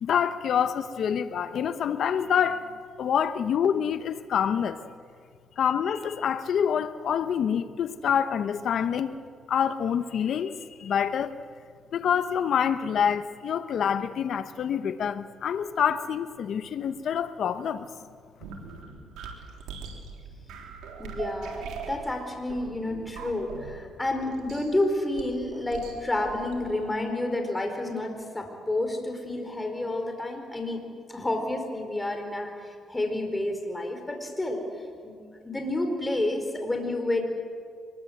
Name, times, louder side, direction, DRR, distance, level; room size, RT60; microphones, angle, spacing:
voice 1, 0.0-4.8 5.6-9.2 9.5-11.4 11.9-17.9, left 8 dB, 65° left, 1.0 m, -26 dB
sound 1, 18.4-26.9, right 5 dB, 90° right, 3.6 m, -41 dB
voice 2, 21.0-30.8 31.1-34.6 35.0-35.2 35.4-37.2, left 1 dB, 15° left, 4.5 m, -30 dB
25.0 x 21.5 x 8.0 m
cardioid pair, 90°, 0 cm